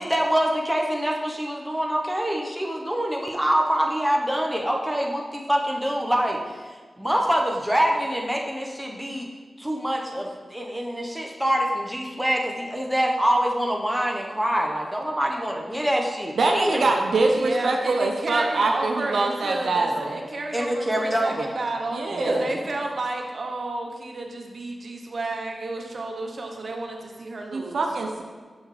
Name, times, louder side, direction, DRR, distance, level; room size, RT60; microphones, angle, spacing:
voice 1, 0.0-6.4 7.0-9.3 9.6-16.8 20.5-21.5 22.1-22.4, equal, 5° right, 0 dB, 1.1 m, -25 dB
voice 2, 16.4-20.2 21.9-22.5 27.5-28.2, right 3 dB, 80° right, 2 dB, 0.7 m, -24 dB
voice 3, 17.3-27.8, right 2 dB, 65° right, 2 dB, 1.0 m, -32 dB
7.0 x 6.4 x 3.3 m, 1.5 s
cardioid pair, 50°, 0 cm